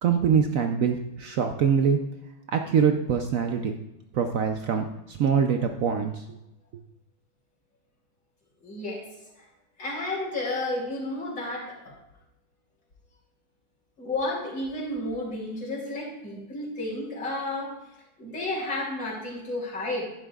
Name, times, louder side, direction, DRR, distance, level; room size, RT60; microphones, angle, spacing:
voice 1, 0.0-2.0 2.5-3.7 4.1-6.2, right 7 dB, 80° right, 5 dB, 0.7 m, -24 dB
voice 2, 8.6-9.0 9.8-11.9 14.0-17.7 18.2-20.1, left 2 dB, 65° left, -6 dB, 3.8 m, -32 dB
11.0 x 10.5 x 2.4 m, 0.90 s
omnidirectional pair, 2.1 m